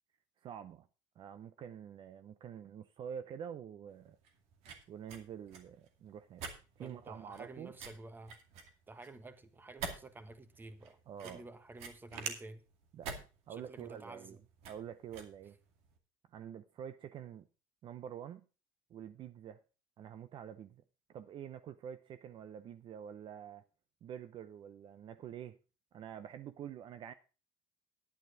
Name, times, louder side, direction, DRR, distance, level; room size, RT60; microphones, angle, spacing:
voice 1, 0.4-0.9 1.2-4.2 4.9-6.4 6.8-7.7 11.1-11.4 12.9-14.4 14.7-15.6 16.3-17.5 17.8-18.4 18.9-19.6 20.0-20.8 21.1-23.6 24.0-25.6 25.9-27.1, right 9 dB, 50° right, 0.7 m, -47 dB
sound 1, 3.9-16.0, right 5 dB, 75° right, 2.3 m, -48 dB
voice 2, 6.8-8.4 8.9-12.6 13.5-14.4, right 2 dB, 20° right, 1.3 m, -51 dB
10.5 x 9.3 x 4.8 m
supercardioid pair, 105°, 11 cm